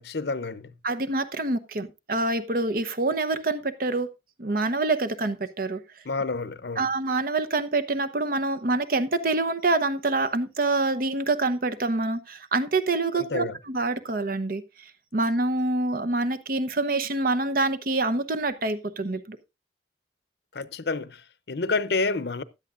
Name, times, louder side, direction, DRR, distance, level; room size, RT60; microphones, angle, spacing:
voice 1, 0.0-0.7 6.0-6.9 13.1-13.6 20.5-22.4, left 3 dB, 65° left, 0.7 m, -29 dB
voice 2, 0.8-4.1 4.4-5.8 6.8-14.6 15.1-19.4, right 2 dB, 55° right, 0.9 m, -26 dB
15.5 x 10.5 x 2.5 m
head